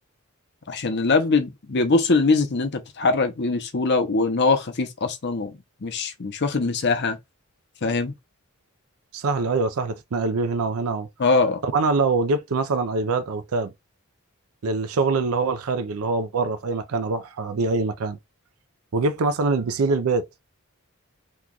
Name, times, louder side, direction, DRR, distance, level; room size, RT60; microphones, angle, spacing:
voice 1, 0.7-5.5 5.8-7.2 7.8-8.1 11.2-11.6, left 3 dB, 50° left, 0.7 m, -22 dB
voice 2, 9.1-11.1 11.6-13.7 14.6-18.2 18.9-20.3, right 3 dB, 85° right, 0.5 m, -24 dB
3.0 x 2.3 x 3.8 m
head